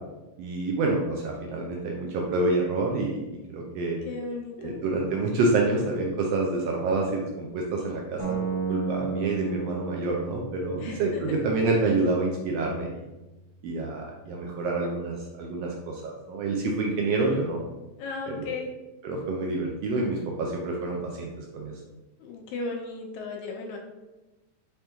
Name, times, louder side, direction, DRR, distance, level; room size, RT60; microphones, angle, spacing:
voice 1, 0.4-3.2 3.5-4.0 4.6-8.4 8.7-13.0 13.6-17.6 18.4-18.5 19.0-21.7, right 3 dB, 80° right, 0 dB, 1.5 m, -27 dB
voice 2, 4.0-4.8 10.8-11.4 18.0-18.7 22.2-23.8, left 3 dB, 80° left, 1 dB, 2.2 m, -35 dB
sound 1, 8.2-14.2, right 4 dB, 35° right, 1.4 m, -35 dB
5.4 x 3.4 x 2.9 m, 1.1 s
omnidirectional pair, 3.3 m